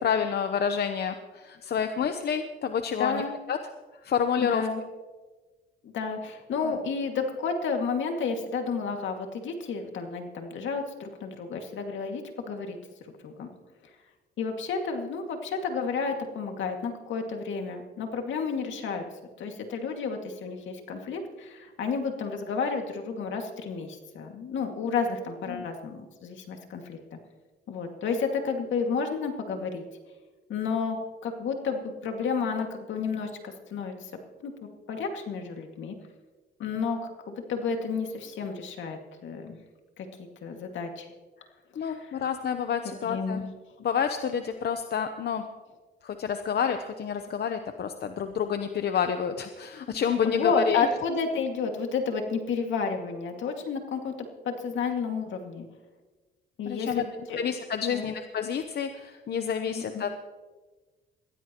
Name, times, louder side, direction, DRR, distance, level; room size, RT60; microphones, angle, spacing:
voice 1, 0.0-3.6 4.0-4.7 6.6-6.8 25.5-25.6 41.8-43.4 43.8-45.4 46.0-50.9 56.7-57.0 57.4-60.2, left 7 dB, 55° left, 7 dB, 0.9 m, -29 dB
voice 2, 3.0-3.4 4.4-4.8 5.8-12.2 12.5-12.8 13.2-13.5 14.4-19.0 19.4-27.2 27.7-29.8 30.5-34.1 34.4-34.5 34.9-36.0 36.6-39.6 40.0-40.1 40.4-41.1 41.7-42.2 43.0-43.5 50.2-54.1 54.4-55.7 56.6-57.4 57.9-58.1 59.7-60.0, left 5 dB, 75° left, 3 dB, 2.2 m, -31 dB
22.0 x 15.5 x 3.0 m, 1.3 s
cardioid pair, 90°, 20 cm